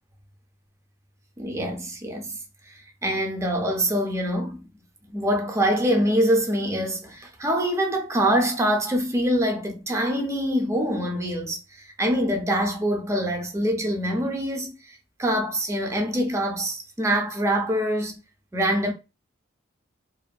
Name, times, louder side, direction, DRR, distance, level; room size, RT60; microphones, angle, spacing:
voice 1, 1.4-2.4 2.7-2.8 3.0-4.7 5.1-18.2 18.5-18.9, equal, 15° right, 0.5 m, -25 dB
2.5 x 2.5 x 2.2 m
head